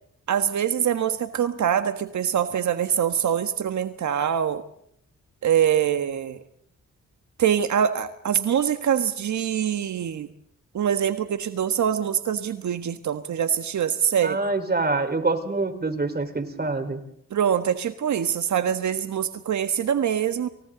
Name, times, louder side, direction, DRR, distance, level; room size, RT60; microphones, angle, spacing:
voice 1, 0.3-4.6 5.4-6.4 7.4-10.3 10.7-14.4 17.3-20.5, right 9 dB, 75° right, 9 dB, 1.5 m, -24 dB
voice 2, 14.2-17.0, right 3 dB, 35° right, 7 dB, 4.5 m, -25 dB
29.5 x 28.5 x 4.0 m, 0.68 s
cardioid pair, 65°, 30 cm